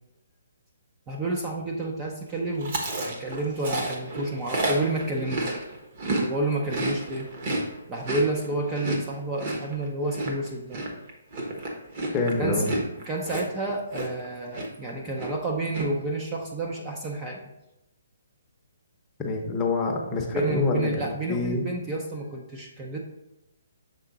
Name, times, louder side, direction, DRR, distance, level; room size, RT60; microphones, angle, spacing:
voice 1, 1.1-5.6 6.2-7.3 7.9-10.8 12.4-12.7 13.1-17.4 20.3-23.0, right 2 dB, 15° right, -1 dB, 0.5 m, -30 dB
Chewing mastication, 2.6-6.3 6.5-14.3 14.5-14.9 15.1-15.9, right 2 dB, 35° right, 1.1 m, -31 dB
voice 2, 12.1-12.7 19.2-21.7, left 3 dB, 15° left, 0 dB, 0.8 m, -26 dB
6.8 x 3.7 x 3.8 m, 0.91 s
hypercardioid pair, 165°, 0 cm